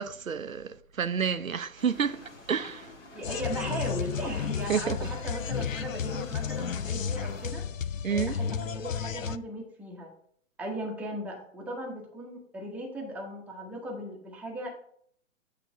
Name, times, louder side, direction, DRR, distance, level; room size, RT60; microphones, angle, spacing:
voice 1, 0.0-2.2 2.5-2.9 4.7-5.0 8.0-8.3, right 6 dB, 85° right, 0.6 m, -29 dB
sound 1, 1.8-7.5, left 3 dB, 60° left, 1.6 m, -49 dB
voice 2, 3.1-7.7 8.1-10.1 10.6-14.8, right 1 dB, 5° right, 0.9 m, -37 dB
sound 2, 3.2-9.4, left 7 dB, 80° left, 0.5 m, -33 dB
8.5 x 3.3 x 6.0 m
figure-of-eight pair, 120°, 39 cm